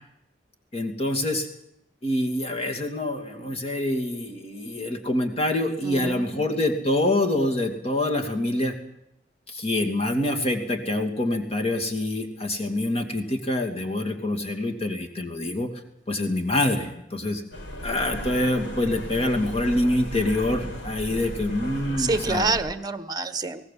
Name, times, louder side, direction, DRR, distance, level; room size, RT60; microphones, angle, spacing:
voice 1, 0.7-1.5 2.0-8.7 9.5-15.7 16.1-17.4 17.8-22.5, left 1 dB, 35° left, 5 dB, 2.7 m, -26 dB
voice 2, 5.8-6.6 22.0-23.7, right 3 dB, 20° right, 12 dB, 1.2 m, -27 dB
sound 1, 17.5-22.6, equal, 90° left, 4.6 m, -35 dB
20.0 x 19.0 x 7.7 m, 0.80 s
head